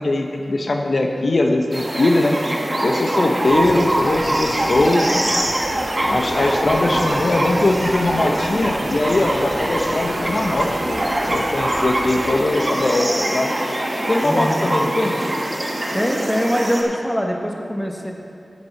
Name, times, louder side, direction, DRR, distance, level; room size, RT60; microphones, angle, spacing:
voice 1, 0.0-2.4 2.8-5.2 6.1-11.0 11.3-13.5 14.1-15.2, left 2 dB, 65° left, 3 dB, 0.7 m, -20 dB
sound 1, 1.7-16.8, right 1 dB, 35° right, 1.3 m, -23 dB
sound 2, 3.4-12.6, right 1 dB, 60° right, 1.1 m, -34 dB
voice 2, 14.2-14.7 15.9-18.1, equal, 5° left, 1 dB, 1.0 m, -22 dB
8.3 x 7.5 x 5.7 m, 2.6 s
wide cardioid pair, 85°, 0 cm